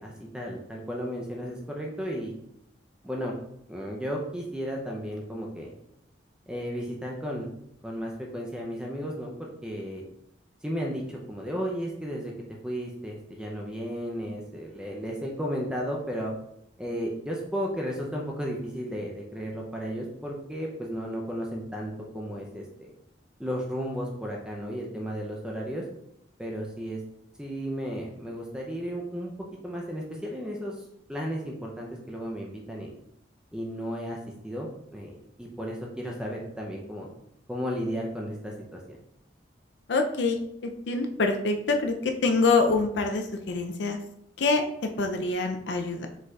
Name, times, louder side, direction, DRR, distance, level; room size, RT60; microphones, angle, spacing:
voice 1, 0.0-2.3 3.0-3.3 3.7-5.7 6.5-7.5 7.8-10.0 10.6-12.3 12.6-16.3 16.8-22.9 23.4-25.8 26.4-27.0 27.4-29.3 29.6-32.9 33.5-34.2 34.4-37.1 37.5-39.0, equal, 5° right, -1 dB, 0.5 m, -34 dB
voice 2, 39.9-44.0 44.4-46.1, left 3 dB, 75° left, 4 dB, 0.5 m, -26 dB
5.2 x 3.9 x 2.3 m, 0.75 s
head